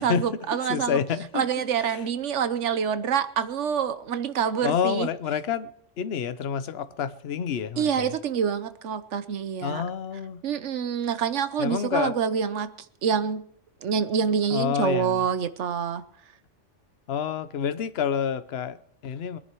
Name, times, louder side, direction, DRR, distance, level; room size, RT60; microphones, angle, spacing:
voice 1, 0.0-1.0 1.3-5.1 7.8-9.8 10.4-12.7 13.0-13.4 13.8-16.0, right 7 dB, 75° right, 1.2 m, -26 dB
voice 2, 0.7-1.4 1.9-2.0 4.6-5.7 6.0-8.1 9.6-10.4 11.6-12.1 14.5-15.2 17.1-19.4, left 7 dB, 60° left, 1.0 m, -28 dB
22.5 x 10.5 x 4.6 m
omnidirectional pair, 1.2 m